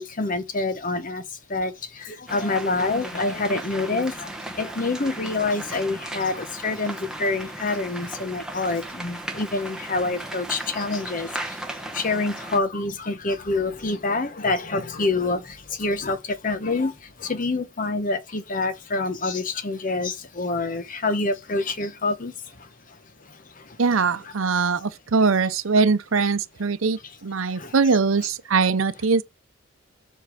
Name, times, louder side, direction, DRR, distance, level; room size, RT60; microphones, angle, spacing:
voice 1, 0.0-23.8 24.2-24.3 24.7-24.8 27.0-27.2 27.5-27.7, left 3 dB, 40° left, 0.9 m, -27 dB
sound 1, 2.3-12.6, right 1 dB, 5° right, 1.1 m, -36 dB
voice 2, 23.8-29.2, right 4 dB, 80° right, 0.7 m, -22 dB
7.6 x 5.4 x 5.0 m
head